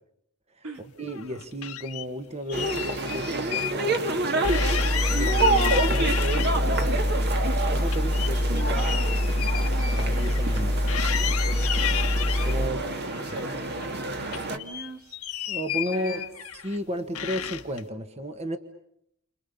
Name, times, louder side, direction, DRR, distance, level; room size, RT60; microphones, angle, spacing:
sound 1, 1.0-2.1 2.5-3.7 4.0-4.1 4.4-6.8 7.2-10.6 10.9-12.5 13.1-14.0 14.3-16.8 17.2-17.8, left 11 dB, 75° left, 1.6 m, -33 dB
voice 1, 1.0-4.6 5.1-7.0 7.7-9.2 9.9-11.0 12.4-12.9 13.3-13.4 15.5-16.2 16.6-18.6, equal, 30° right, 7 dB, 1.5 m, -33 dB
sound 2, 2.5-14.6, right 2 dB, 50° right, 2.3 m, -29 dB
sound 3, 4.4-12.7, left 1 dB, 30° left, 1.2 m, -25 dB
voice 2, 12.6-15.2 15.9-16.3, right 2 dB, 70° right, 4 dB, 3.6 m, -42 dB
30.0 x 27.0 x 7.0 m, 0.77 s
head